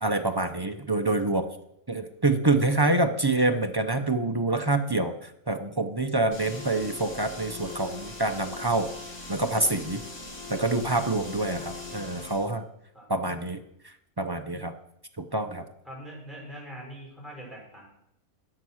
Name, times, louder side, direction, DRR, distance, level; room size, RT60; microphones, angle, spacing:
voice 1, 0.0-1.5 1.9-8.9 9.3-10.0 10.5-12.7 13.1-14.7 15.2-15.6, right 2 dB, 35° right, 6 dB, 0.4 m, -26 dB
sound 1, 6.3-12.5, left 3 dB, 65° left, 3.1 m, -40 dB
voice 2, 15.8-17.9, equal, ahead, -4 dB, 5.7 m, -42 dB
13.5 x 8.4 x 6.3 m, 0.77 s
omnidirectional pair, 1.6 m